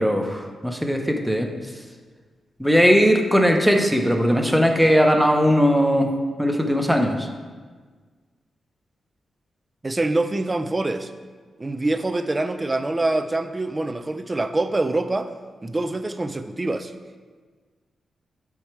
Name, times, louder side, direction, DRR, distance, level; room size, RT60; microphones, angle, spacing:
voice 1, 0.0-1.5 2.6-6.1 6.4-7.3, equal, ahead, 4 dB, 0.8 m, -19 dB
voice 2, 9.8-11.1 11.6-15.3 15.6-16.9, right 2 dB, 25° right, 9 dB, 0.4 m, -25 dB
7.0 x 4.8 x 4.5 m, 1.5 s
cardioid pair, 80°, 0 cm